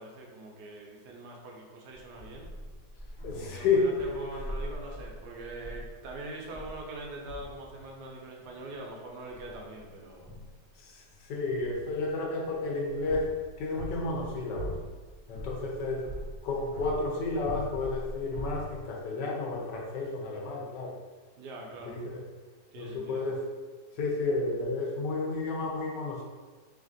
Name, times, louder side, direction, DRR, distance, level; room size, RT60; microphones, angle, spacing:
voice 1, 0.0-2.5 3.3-10.3 21.4-22.0 22.7-23.2, right 2 dB, 75° right, -1 dB, 1.1 m, -43 dB
sound 1, 2.0-7.9 8.2-8.9 9.3-10.7 11.1-18.8, left 1 dB, 35° left, 0.5 m, -42 dB
voice 2, 3.2-4.4 10.8-13.3 13.6-14.8 15.3-16.0 16.4-20.9 21.8-22.2 22.8-23.4 24.0-26.2, left 3 dB, 80° left, -2 dB, 1.3 m, -31 dB
3.2 x 2.4 x 2.5 m, 1.4 s
omnidirectional pair, 1.8 m